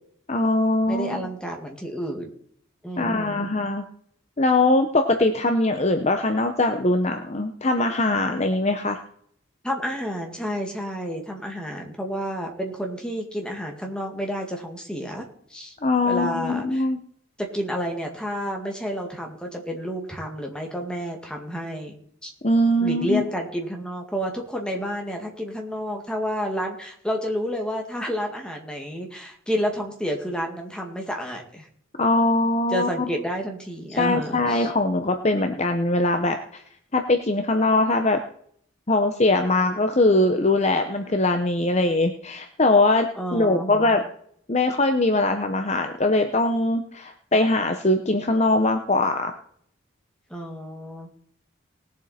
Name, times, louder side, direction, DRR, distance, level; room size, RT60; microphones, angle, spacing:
voice 1, 0.3-1.3 3.0-3.8 4.4-9.0 15.8-17.0 22.4-23.2 32.0-32.9 34.0-36.6 36.9-38.2 38.9-44.0 44.5-49.3, left 2 dB, 30° left, 6 dB, 0.8 m, -21 dB
voice 2, 0.9-2.3 2.8-3.5 9.6-15.2 15.5-15.8 16.0-16.9 17.4-22.0 22.2-22.3 22.8-31.7 32.7-34.7 43.2-44.0 50.3-51.3, equal, 5° left, 1 dB, 2.0 m, -30 dB
19.5 x 7.4 x 4.3 m, 0.65 s
head